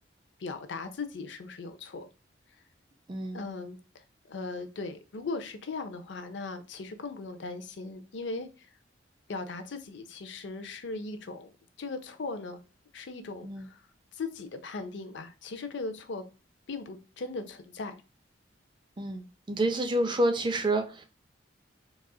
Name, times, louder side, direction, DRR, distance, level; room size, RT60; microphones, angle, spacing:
voice 1, 0.4-2.1 3.3-8.7 9.3-11.5 11.8-12.6 12.9-13.8 14.1-16.2 16.7-18.0, left 3 dB, 75° left, 0.5 m, -38 dB
voice 2, 3.1-3.4 13.4-13.7 19.0-21.1, right 1 dB, 25° right, 0.5 m, -28 dB
4.1 x 2.4 x 2.3 m
head